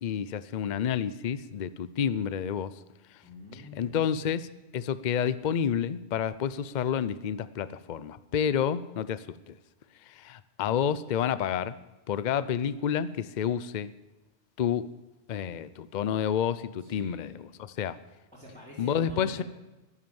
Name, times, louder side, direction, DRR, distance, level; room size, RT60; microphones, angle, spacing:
voice 1, 0.0-2.7 3.8-4.5 4.7-9.5 10.2-11.8 12.1-13.9 14.6-14.9 15.3-17.3 17.6-18.0 18.8-19.4, left 8 dB, 50° left, 15 dB, 0.7 m, -29 dB
voice 2, 3.2-4.0 16.8-17.2 18.3-19.4, left 2 dB, 5° left, -7 dB, 3.4 m, -47 dB
12.5 x 11.0 x 7.0 m, 1.1 s
omnidirectional pair, 1.1 m